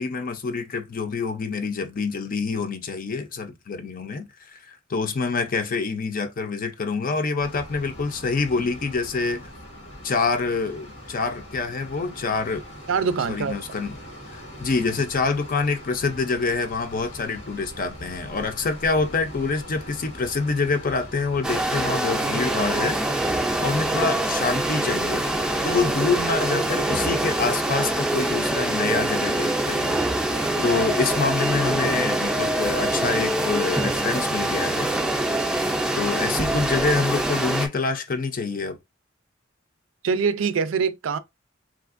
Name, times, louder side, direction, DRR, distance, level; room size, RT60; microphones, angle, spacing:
voice 1, 0.0-9.5 10.0-12.6 13.3-14.0 14.3-23.0 23.6-25.3 25.6-30.0 30.6-34.9 36.0-38.8, left 4 dB, 45° left, 0.5 m, -26 dB
sound 1, 7.4-27.0, equal, 90° left, 1.2 m, -42 dB
voice 2, 12.9-13.6 30.5-30.6 40.0-41.2, right 5 dB, 85° right, 0.4 m, -24 dB
sound 2, 21.4-37.7, right 1 dB, 5° right, 0.5 m, -24 dB
3.3 x 2.4 x 2.5 m
head